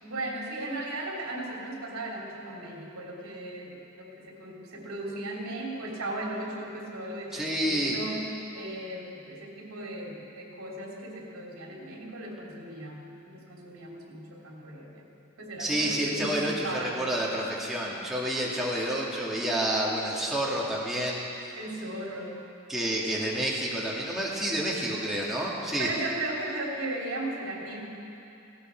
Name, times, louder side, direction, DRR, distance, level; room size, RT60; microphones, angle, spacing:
voice 1, 0.0-15.0 15.4-17.0 21.5-22.4 25.4-27.8, right 2 dB, 80° right, -2 dB, 3.2 m, -37 dB
voice 2, 7.3-8.0 15.6-21.2 22.7-25.9, right 1 dB, ahead, -6 dB, 2.0 m, -29 dB
19.0 x 16.5 x 4.5 m, 2.8 s
head